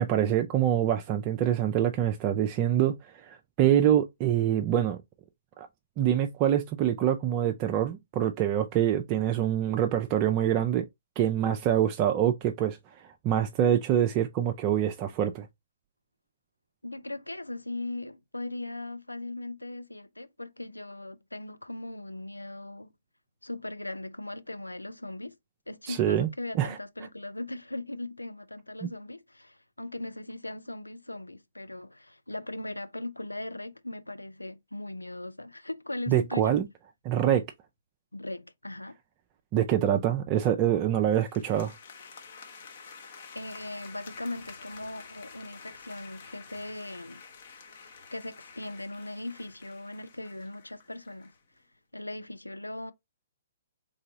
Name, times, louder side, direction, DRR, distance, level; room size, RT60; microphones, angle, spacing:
voice 1, 0.0-5.0 5.6-5.7 6.0-10.9 11.2-15.5 25.9-26.3 26.6-26.8 36.1-36.7 37.0-37.4 39.5-41.7, right 10 dB, 30° right, 0.4 m, -25 dB
voice 2, 16.8-22.9 23.4-25.3 25.7-36.6 38.1-39.0 43.3-47.2 48.1-51.3 51.9-52.9, left 2 dB, 85° left, 0.4 m, -39 dB
sound 1, 41.1-51.4, left 5 dB, 50° left, 0.9 m, -49 dB
3.8 x 3.3 x 2.7 m
figure-of-eight pair, 125°, 0 cm